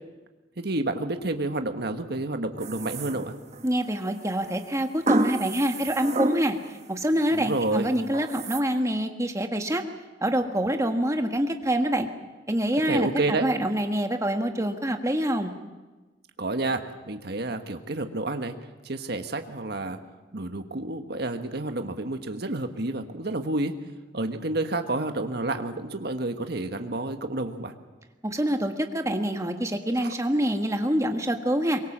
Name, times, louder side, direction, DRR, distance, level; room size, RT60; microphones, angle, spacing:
voice 1, 0.6-3.3 7.3-7.9 12.9-13.5 16.4-16.8 17.1-18.5 18.8-20.0 20.3-23.7 24.1-27.7 30.0-30.1, right 2 dB, 55° right, 7 dB, 1.4 m, -29 dB
sound 1, 2.6-3.7 5.1-6.7 7.1-7.6 8.1-8.6, right 2 dB, 35° right, 1.0 m, -29 dB
voice 2, 3.6-6.6 6.9-9.8 10.2-12.1 12.5-15.5 28.2-31.8, right 1 dB, 15° right, 5 dB, 1.6 m, -26 dB
23.5 x 22.5 x 7.4 m, 1.2 s
head